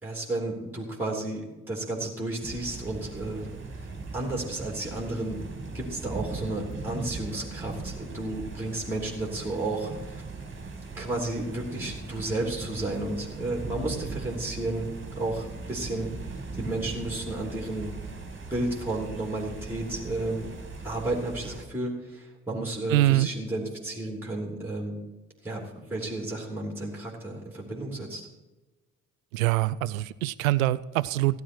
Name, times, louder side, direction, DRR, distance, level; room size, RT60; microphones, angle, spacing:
voice 1, 0.0-3.5 4.1-5.4 5.7-9.9 11.0-14.9 15.2-16.1 16.6-17.9 18.5-20.5 20.8-25.0 25.4-28.3, right 2 dB, 5° right, 0 dB, 3.1 m, -32 dB
sound 1, 2.4-21.7, right 3 dB, 30° right, 2.3 m, -39 dB
voice 2, 22.9-23.3 29.3-31.4, right 16 dB, 75° right, 19 dB, 0.6 m, -24 dB
16.5 x 9.7 x 4.5 m, 1.1 s
figure-of-eight pair, 45°, 41 cm